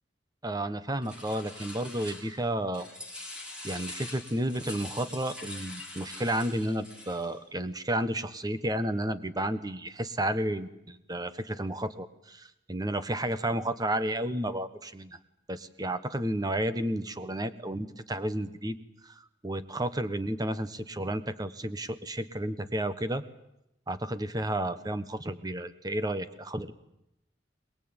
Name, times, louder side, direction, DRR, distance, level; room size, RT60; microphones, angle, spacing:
voice 1, 0.4-2.9 3.6-15.2 15.5-18.8 19.0-19.1 19.4-23.2 23.9-26.7, right 1 dB, 20° right, 12 dB, 1.2 m, -32 dB
sound 1, 1.0-2.5 2.7-7.4, left 2 dB, 5° right, 3.5 m, -44 dB
22.5 x 21.5 x 8.9 m, 0.85 s
head